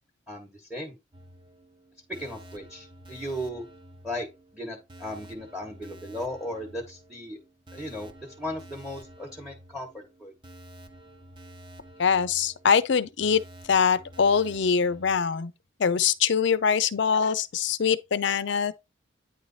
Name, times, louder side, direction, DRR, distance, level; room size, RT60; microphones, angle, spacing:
voice 1, 0.3-1.0 2.2-3.6 4.0-4.3 4.5-7.4 7.7-8.1 8.4-10.3, left 1 dB, 5° right, 1.0 m, -36 dB
sound 1, 1.1-15.2, right 1 dB, 25° right, 0.8 m, -50 dB
voice 2, 12.0-15.5 15.8-18.7, left 6 dB, 65° left, 0.5 m, -23 dB
9.2 x 3.2 x 4.0 m
head